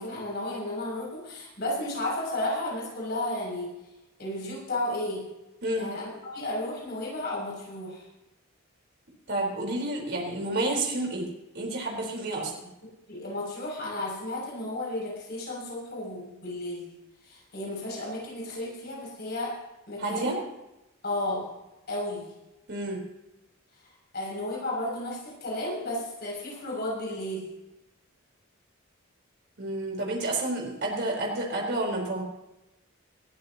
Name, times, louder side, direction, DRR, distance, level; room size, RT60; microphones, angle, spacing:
voice 1, 0.0-3.7 4.2-5.2 5.7-8.0 13.1-16.9 17.2-19.5 19.9-20.4 21.0-21.5 21.9-22.3 24.1-27.5, left 1 dB, 45° left, -3 dB, 6.7 m, -33 dB
voice 2, 9.3-11.3 11.5-12.5 20.0-20.4 22.7-23.0 29.6-32.2, right 2 dB, 50° right, 0 dB, 4.2 m, -30 dB
20.5 x 14.5 x 2.9 m, 0.92 s
head